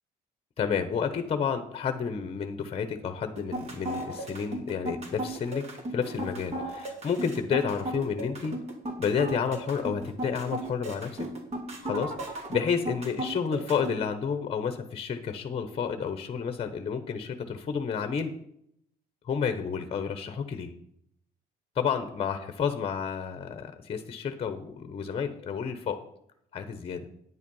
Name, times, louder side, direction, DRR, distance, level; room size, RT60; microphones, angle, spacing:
voice 1, 0.6-8.6 9.0-11.3 11.8-18.3 19.2-20.7 21.7-26.0 26.5-27.1, left 6 dB, 35° left, 9 dB, 1.0 m, -30 dB
sound 1, 3.4-14.0, right 1 dB, 40° right, 3.0 m, -35 dB
9.7 x 8.3 x 5.5 m, 0.71 s
cardioid pair, 110°, 17 cm